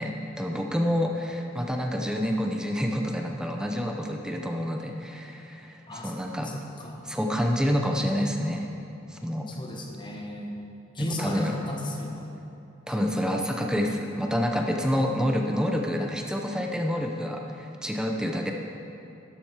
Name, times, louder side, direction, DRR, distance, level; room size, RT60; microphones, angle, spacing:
voice 1, 0.0-6.6 7.1-8.7 9.1-9.5 11.0-11.5 12.9-18.5, equal, 5° right, 2 dB, 0.6 m, -28 dB
voice 2, 5.9-6.2 6.4-7.1 9.5-10.6 10.9-12.3, left 1 dB, 25° left, -1 dB, 1.3 m, -35 dB
12.0 x 7.6 x 4.8 m, 2.7 s
head